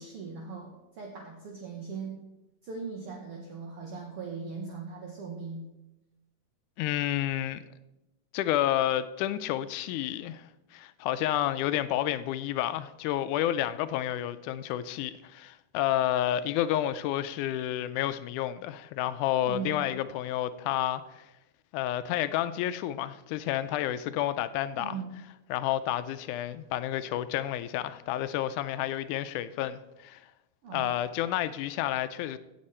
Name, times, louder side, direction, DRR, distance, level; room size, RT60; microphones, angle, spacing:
voice 1, 0.0-2.3 2.6-5.7 19.4-19.9 24.8-25.1 30.6-31.0, right 5 dB, 60° right, 1.8 m, -39 dB
voice 2, 6.8-7.6 8.3-21.3 21.7-25.0 25.5-30.2 30.7-32.4, left 12 dB, 85° left, 2.0 m, -30 dB
16.5 x 7.4 x 4.3 m
omnidirectional pair, 3.5 m